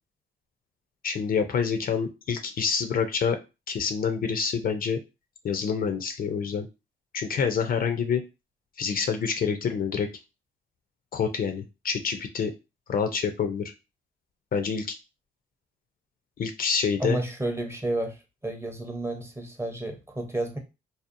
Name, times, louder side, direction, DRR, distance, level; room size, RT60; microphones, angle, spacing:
voice 1, 1.0-3.4 3.7-5.0 5.4-6.7 7.1-8.3 8.8-10.1 11.1-12.5 12.9-13.7 14.5-14.9 16.4-17.2, left 6 dB, 45° left, 7 dB, 0.4 m, -27 dB
voice 2, 17.0-20.6, right 1 dB, 15° right, 3 dB, 0.6 m, -31 dB
2.7 x 2.0 x 2.5 m, 0.26 s
cardioid pair, 90°, 20 cm